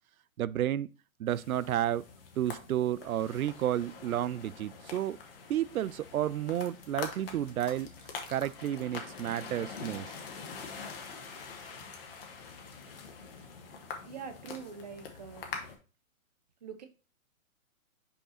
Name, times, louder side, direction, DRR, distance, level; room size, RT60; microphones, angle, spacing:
voice 1, 0.4-0.9 1.2-2.1 2.4-5.2 5.5-7.9 8.3-10.1, right 11 dB, 80° right, 0.5 m, -31 dB
sound 1, 1.3-15.7, left 5 dB, 40° left, 1.4 m, -45 dB
sound 2, 6.6-12.9, left 5 dB, 60° left, 1.6 m, -58 dB
voice 2, 14.0-15.6 16.6-16.9, right 6 dB, 30° right, 0.6 m, -44 dB
5.3 x 4.9 x 4.1 m
hypercardioid pair, 165°, 42 cm